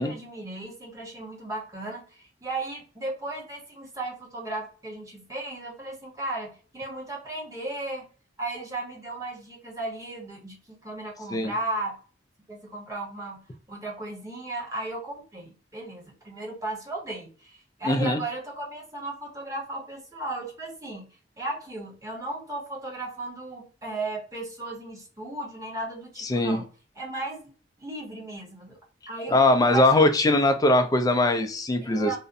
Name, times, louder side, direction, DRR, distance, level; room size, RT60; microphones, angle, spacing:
voice 1, 0.0-8.1 8.4-12.0 12.5-13.4 13.7-21.1 21.4-26.6 27.0-27.5 27.8-28.8 29.1-30.1 31.8-32.2, right 2 dB, 20° right, -2 dB, 0.8 m, -35 dB
voice 2, 17.9-18.2 26.2-26.6 29.3-32.2, left 2 dB, 20° left, 7 dB, 0.3 m, -21 dB
2.5 x 2.0 x 2.4 m, 0.39 s
head